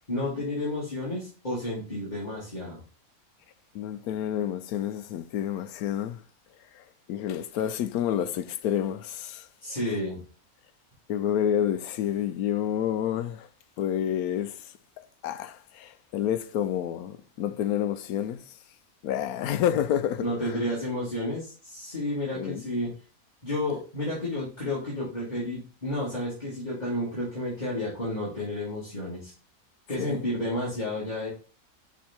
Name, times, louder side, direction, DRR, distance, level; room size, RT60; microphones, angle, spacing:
voice 1, 0.1-2.8 9.6-10.2 20.2-22.9 23.4-29.3 29.9-31.3, left 1 dB, 30° left, 2.3 m, -31 dB
voice 2, 3.7-6.2 6.7-6.8 7.1-9.5 11.1-13.5 13.8-14.7 15.2-18.5 19.0-20.5 22.3-22.7 30.0-30.2, left 10 dB, 80° left, 1.1 m, -29 dB
6.1 x 3.6 x 4.3 m
omnidirectional pair, 1.5 m